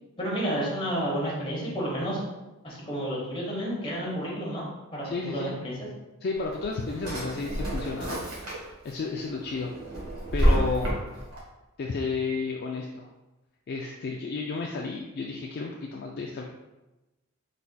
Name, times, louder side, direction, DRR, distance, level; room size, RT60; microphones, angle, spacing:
voice 1, 0.2-2.2 2.6-4.6 4.9-5.9, equal, 25° left, -5 dB, 1.2 m, -31 dB
voice 2, 5.0-5.6 6.2-8.2 8.8-9.7 10.3-11.0 11.8-13.1 13.7-16.4, left 4 dB, 45° left, 0 dB, 0.3 m, -32 dB
Drawer open or close, 6.3-8.9 9.3-11.4, equal, 85° right, 1.4 m, -28 dB
4.3 x 3.9 x 2.2 m, 1.1 s
head